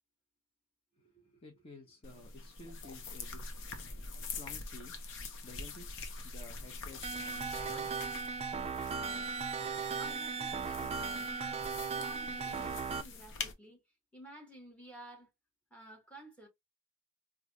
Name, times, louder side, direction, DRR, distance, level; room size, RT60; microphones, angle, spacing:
voice 1, 1.0-3.5 4.3-5.0 5.4-5.9 6.2-8.0, left 2 dB, 25° left, 1.0 m, -53 dB
sound 1, 2.0-13.5, left 4 dB, 60° left, 0.7 m, -45 dB
sound 2, 7.0-13.0, right 5 dB, 30° right, 0.3 m, -37 dB
voice 2, 9.9-11.0 11.3-13.8 14.1-15.3 15.7-16.5, right 1 dB, 5° left, 1.4 m, -53 dB
4.7 x 2.4 x 2.3 m
head